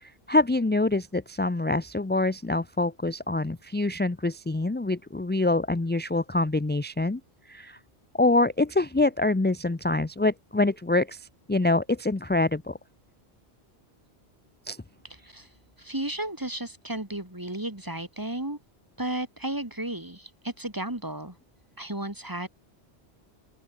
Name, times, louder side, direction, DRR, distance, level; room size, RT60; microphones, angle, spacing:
voice 1, 0.0-7.2 7.5-7.8 8.2-11.2 11.5-12.8 14.7-14.8, left 2 dB, 15° left, 0.4 m, -25 dB
voice 2, 15.8-18.6 19.0-21.4 21.8-22.5, right 1 dB, 20° right, 2.4 m, -33 dB
open air
omnidirectional pair, 1.1 m